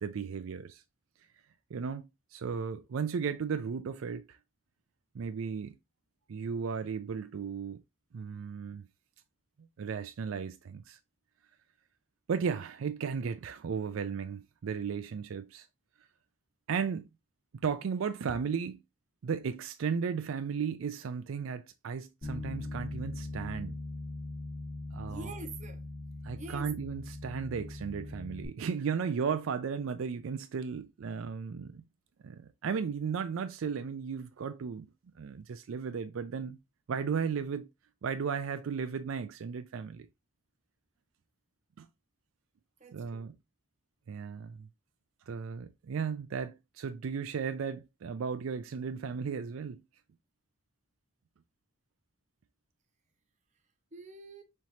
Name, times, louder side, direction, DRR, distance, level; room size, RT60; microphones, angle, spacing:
voice 1, 0.0-0.8 1.7-4.4 5.1-5.8 6.3-7.8 8.1-8.8 9.8-11.0 12.3-15.7 16.7-17.0 17.5-18.8 19.2-23.8 24.9-25.3 26.2-31.8 32.2-34.9 35.2-36.6 36.9-37.7 38.0-40.1 41.8-41.9 42.9-43.4 44.1-44.7 45.3-49.8, right 6 dB, 80° right, 0.4 m, -35 dB
Bass guitar, 22.2-28.5, left 2 dB, 45° left, 2.2 m, -41 dB
voice 2, 25.1-25.8 26.4-26.7 42.8-43.3 53.9-54.4, right 3 dB, 35° right, 0.8 m, -45 dB
5.6 x 3.1 x 2.7 m
head